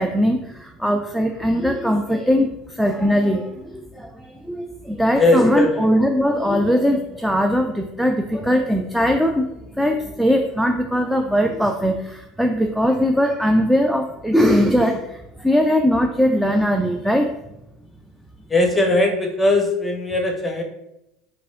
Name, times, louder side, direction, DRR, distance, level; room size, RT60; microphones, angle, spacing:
voice 1, 0.0-9.4 9.7-17.3, equal, ahead, 3 dB, 0.3 m, -20 dB
voice 2, 5.1-5.9 18.5-20.6, left 2 dB, 15° left, 1 dB, 0.9 m, -19 dB
4.7 x 2.4 x 2.5 m, 0.88 s
hypercardioid pair, 80°, 0 cm